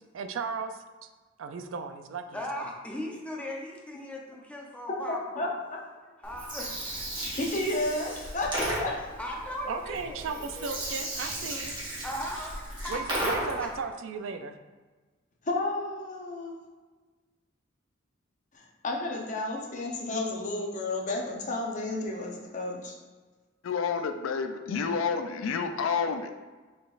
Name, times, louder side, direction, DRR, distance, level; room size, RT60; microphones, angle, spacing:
voice 1, 0.1-1.1 1.4-2.7 9.7-12.0 12.9-14.6, right 5 dB, 80° right, 8 dB, 0.4 m, -36 dB
voice 2, 2.3-5.5 6.2-7.3 9.2-10.8 12.0-13.7, left 1 dB, 5° left, -2 dB, 0.7 m, -38 dB
voice 3, 5.1-5.8 7.4-8.9 15.4-16.5 18.5-22.9, left 2 dB, 40° left, -1 dB, 0.7 m, -32 dB
Gurgling, 6.2-13.8, right 1 dB, 25° right, 1.2 m, -35 dB
voice 4, 23.6-26.3, left 5 dB, 90° left, 7 dB, 0.4 m, -29 dB
5.2 x 4.0 x 2.5 m, 1.3 s
head